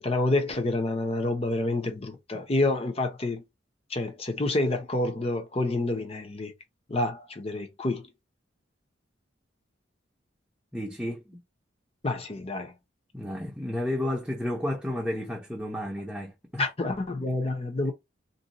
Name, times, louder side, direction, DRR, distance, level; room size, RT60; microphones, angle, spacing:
voice 1, 0.0-3.4 3.9-6.5 6.9-8.1 12.0-12.7 16.6-17.9, left 2 dB, 30° left, 0.7 m, -28 dB
voice 2, 10.7-11.4 13.1-16.6 17.8-17.9, left 1 dB, 5° right, 0.6 m, -32 dB
2.7 x 2.3 x 4.0 m
head